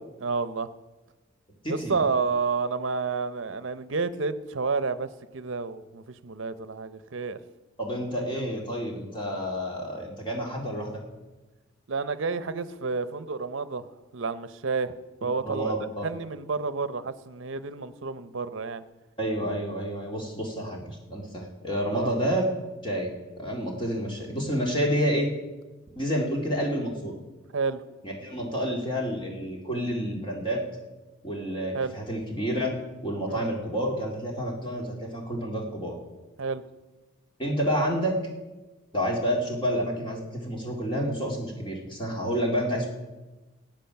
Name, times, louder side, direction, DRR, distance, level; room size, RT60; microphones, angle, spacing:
voice 1, 0.2-0.7 1.7-7.4 8.3-8.4 11.9-13.9 14.1-14.9 15.2-15.8 16.0-18.8 21.9-22.1 27.5-27.8 31.7-31.9 33.3-33.5 36.4-36.6, right 4 dB, 65° right, 14 dB, 0.7 m, -30 dB
voice 2, 1.6-2.0 7.8-11.0 15.4-16.0 19.2-22.4 22.8-23.1 23.4-25.3 26.0-27.1 28.0-30.6 31.2-32.7 33.0-36.0 37.4-38.2 38.9-42.9, equal, 25° left, 0 dB, 2.3 m, -29 dB
16.0 x 9.0 x 5.8 m, 1.2 s
head